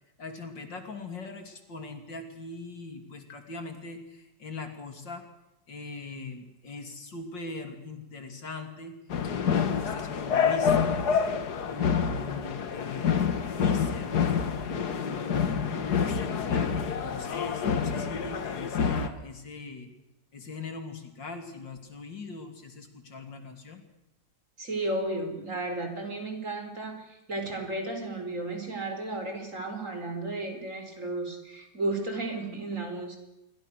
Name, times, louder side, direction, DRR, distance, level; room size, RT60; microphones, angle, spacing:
voice 1, 0.2-5.2 5.7-9.0 9.3-11.1 11.6-13.2 13.6-14.2 14.7-19.9 20.3-23.8, left 3 dB, 75° left, 5 dB, 3.6 m, -40 dB
sound 1, 9.1-19.1, left 7 dB, 60° left, 1.9 m, -27 dB
voice 2, 24.6-33.2, right 2 dB, 40° right, 5 dB, 4.9 m, -33 dB
27.5 x 23.5 x 6.5 m, 0.91 s
omnidirectional pair, 2.0 m